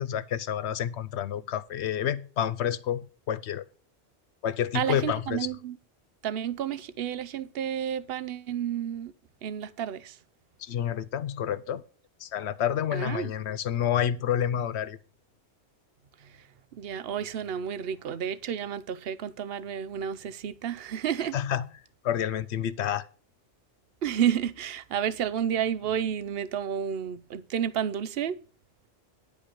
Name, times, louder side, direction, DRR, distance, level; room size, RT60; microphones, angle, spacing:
voice 1, 0.0-3.6 4.4-5.5 10.6-11.8 12.2-15.0 21.3-21.7 22.0-23.1, left 9 dB, 80° left, 1.0 m, -29 dB
voice 2, 4.7-5.8 6.2-9.1 9.4-10.2 12.9-13.3 16.2-16.3 16.7-21.4 24.0-28.4, right 9 dB, 65° right, 0.9 m, -31 dB
10.5 x 5.2 x 6.3 m
omnidirectional pair, 1.1 m